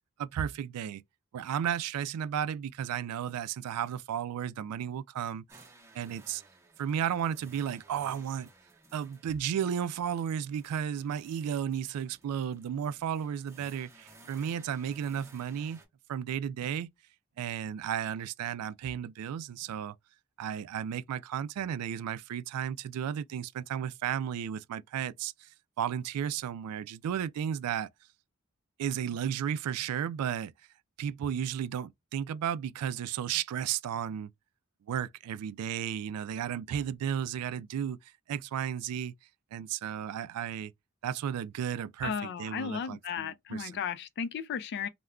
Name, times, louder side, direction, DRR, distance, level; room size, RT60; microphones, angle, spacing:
voice 1, 0.2-1.0 1.3-5.6 5.9-6.4 6.8-8.5 8.9-15.8 16.1-16.9 17.4-19.9 20.4-25.5 25.8-27.9 28.8-30.5 31.0-34.3 34.9-38.0 38.3-39.1 39.5-40.7 41.0-43.7, right 9 dB, 90° right, 0.3 m, -33 dB
sound 1, 5.5-15.9, right 2 dB, 15° right, 0.7 m, -58 dB
voice 2, 42.0-44.9, left 7 dB, 50° left, 0.3 m, -35 dB
2.2 x 2.1 x 3.5 m
head